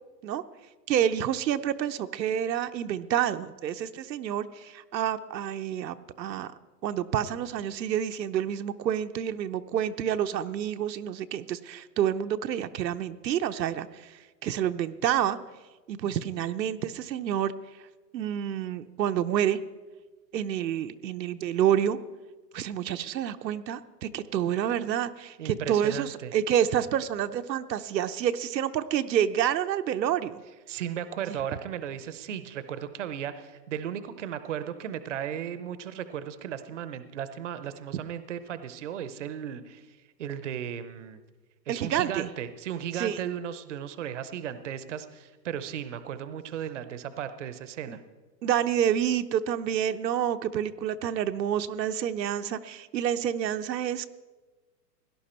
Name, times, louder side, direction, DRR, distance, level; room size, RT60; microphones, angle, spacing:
voice 1, 0.9-6.5 6.8-15.4 15.9-17.5 18.1-19.6 20.3-22.0 22.5-30.4 31.3-31.4 41.7-42.3 42.9-43.2 47.9-48.0 48.4-54.1, right 10 dB, 85° right, 10 dB, 0.8 m, -28 dB
voice 2, 25.4-26.3 30.7-41.2 41.7-48.0, right 9 dB, 45° right, 12 dB, 0.7 m, -36 dB
17.0 x 11.0 x 4.3 m, 1.3 s
hypercardioid pair, 175°, 50 cm